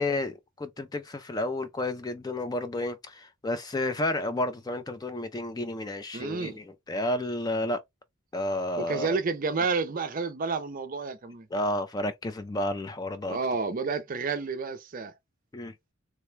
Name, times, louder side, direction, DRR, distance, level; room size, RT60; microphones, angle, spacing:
voice 1, 0.0-7.8 8.3-9.2 11.5-13.4 15.5-15.7, left 1 dB, 20° left, 0.3 m, -31 dB
voice 2, 6.1-6.6 8.8-11.5 13.3-15.1, right 4 dB, 40° right, 0.5 m, -30 dB
3.3 x 2.1 x 3.1 m
head